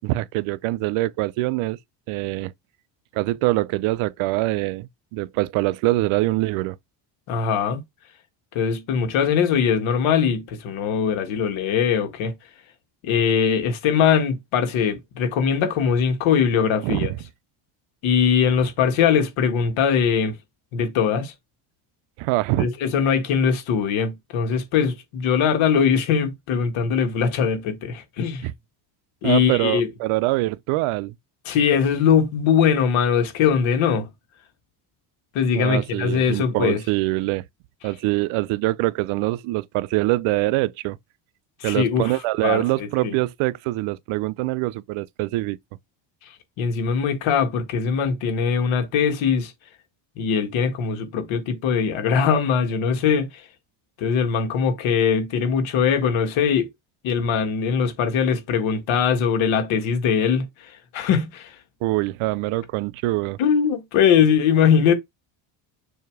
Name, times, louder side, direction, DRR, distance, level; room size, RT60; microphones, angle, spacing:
voice 1, 0.0-1.8 2.1-2.5 3.1-6.8 16.8-17.2 22.2-22.7 28.4-28.5 29.2-31.1 35.5-37.4 37.8-41.0 41.6-45.6 61.8-63.4, right 19 dB, 85° right, 0.6 m, -24 dB
voice 2, 7.3-7.8 8.5-12.3 13.0-17.1 18.0-20.3 20.7-21.3 22.6-28.5 29.2-29.9 31.4-34.1 35.3-36.8 41.6-42.1 42.4-43.1 46.6-49.5 50.1-53.4 54.0-56.7 57.0-61.6 63.4-64.9, left 7 dB, 75° left, 1.8 m, -21 dB
7.1 x 2.9 x 4.7 m
cardioid pair, 170°, 47 cm